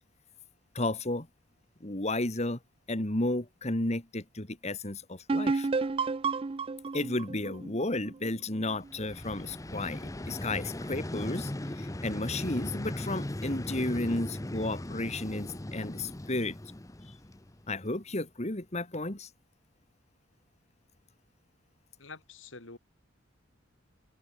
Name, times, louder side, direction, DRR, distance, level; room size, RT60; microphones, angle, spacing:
voice 1, 0.7-1.3 1.8-2.6 2.9-5.7 6.9-16.6 17.1-17.2 17.7-19.3, left 2 dB, 35° left, 2.1 m, -33 dB
sound 1, 5.3-8.9, right 4 dB, 25° right, 0.4 m, -31 dB
Vehicle, 8.8-17.8, left 1 dB, 15° left, 0.8 m, -38 dB
voice 2, 22.0-22.8, left 4 dB, 70° left, 2.9 m, -47 dB
head